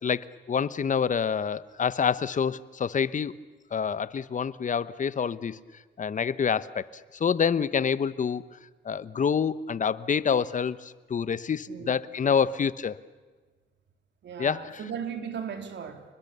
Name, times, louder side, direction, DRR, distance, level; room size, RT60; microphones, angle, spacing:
voice 1, 0.0-3.3 3.7-5.6 6.0-6.9 7.1-8.4 8.8-13.0 14.4-14.8, left 7 dB, 40° left, 16 dB, 1.1 m, -27 dB
voice 2, 14.2-16.0, right 7 dB, 65° right, 6 dB, 3.6 m, -37 dB
30.0 x 21.0 x 6.9 m, 1.4 s
cardioid pair, 90°, 20 cm